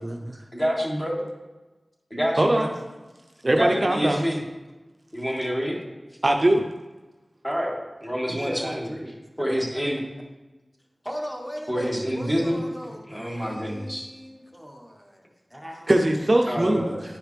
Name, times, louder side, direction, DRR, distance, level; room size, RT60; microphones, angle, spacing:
voice 1, 0.0-0.4 2.4-2.7 3.4-4.2 6.2-6.6 15.9-16.9, right 1 dB, 45° right, 3 dB, 0.5 m, -21 dB
voice 2, 0.5-1.2 2.1-2.7 3.5-4.4 5.1-5.8 7.4-8.9 9.4-10.0 11.7-12.6 13.1-14.1 16.5-17.0, equal, 15° left, -2 dB, 1.8 m, -27 dB
voice 3, 8.3-9.1 11.0-15.9 16.4-16.6, equal, ahead, 1 dB, 1.2 m, -38 dB
9.9 x 4.9 x 3.3 m, 1.2 s
wide cardioid pair, 55°, 0 cm